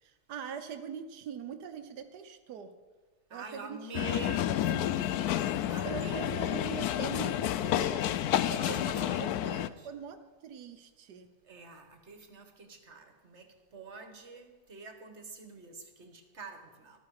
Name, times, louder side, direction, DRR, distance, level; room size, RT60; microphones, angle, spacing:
voice 1, 0.0-2.7 3.3-4.3 5.8-8.1 8.4-11.3, right 7 dB, 85° right, 1.5 m, -42 dB
voice 2, 3.3-6.4 8.3-9.9 11.4-17.0, right 3 dB, 45° right, 1.7 m, -46 dB
sound 1, 3.9-9.7, left 12 dB, 75° left, 1.1 m, -30 dB
14.0 x 12.5 x 4.9 m
omnidirectional pair, 1.7 m